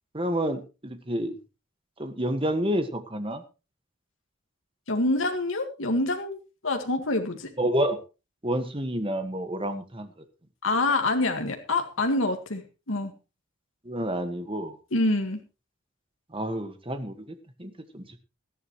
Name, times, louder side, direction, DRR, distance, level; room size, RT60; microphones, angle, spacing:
voice 1, 0.1-1.4 2.0-3.4 7.6-8.0 8.4-10.1 13.8-14.8 16.3-17.2 17.6-18.2, right 1 dB, 25° right, 8 dB, 1.5 m, -29 dB
voice 2, 4.9-6.4 6.6-7.5 10.6-13.1 14.9-15.4, left 2 dB, 70° left, 4 dB, 1.7 m, -26 dB
18.0 x 12.0 x 3.1 m, 0.30 s
head